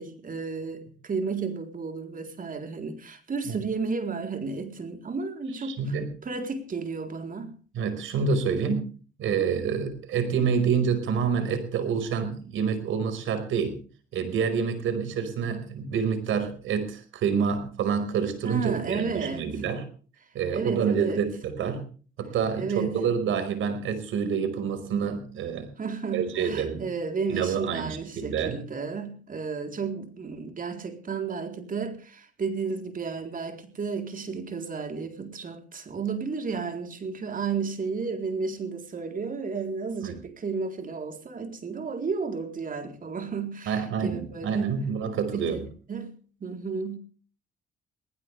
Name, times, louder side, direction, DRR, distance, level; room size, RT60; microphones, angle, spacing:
voice 1, 0.0-5.8 6.2-7.5 18.4-19.5 20.5-21.3 22.6-22.9 25.8-44.7 45.3-46.1 46.4-47.0, right 5 dB, 45° right, 4.0 m, -32 dB
voice 2, 5.6-6.1 7.7-8.9 9.2-13.8 14.1-19.8 20.3-21.8 22.2-25.7 26.1-26.8 27.3-28.6 40.0-40.2 43.7-45.6, right 6 dB, 80° right, 5.2 m, -27 dB
19.5 x 19.5 x 3.5 m
cardioid pair, 90°, 20 cm